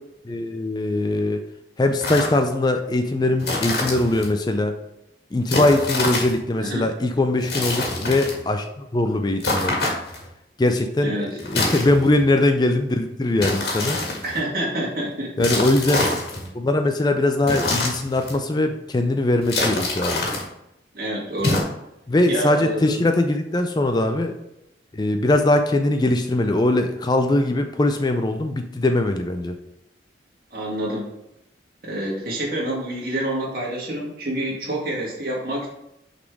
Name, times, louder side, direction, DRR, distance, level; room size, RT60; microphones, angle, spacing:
voice 1, 0.3-1.4 1.8-4.7 5.3-9.9 10.6-14.0 15.4-16.1 16.5-20.2 22.1-24.3 24.9-29.6, left 2 dB, 25° left, 6 dB, 0.4 m, -21 dB
sound 1, 2.0-2.4 3.4-4.3 5.5-6.4 7.4-8.4 9.4-10.3 11.4-12.2 13.4-14.4 15.4-16.5 17.4-18.4 19.4-20.5 21.4-21.6, left 2 dB, 60° left, 1.8 m, -25 dB
voice 2, 14.2-15.3 20.9-21.6 22.3-23.0 30.5-31.1 31.8-35.7, right 1 dB, 55° right, -3 dB, 1.9 m, -27 dB
5.9 x 4.2 x 4.7 m, 0.84 s
head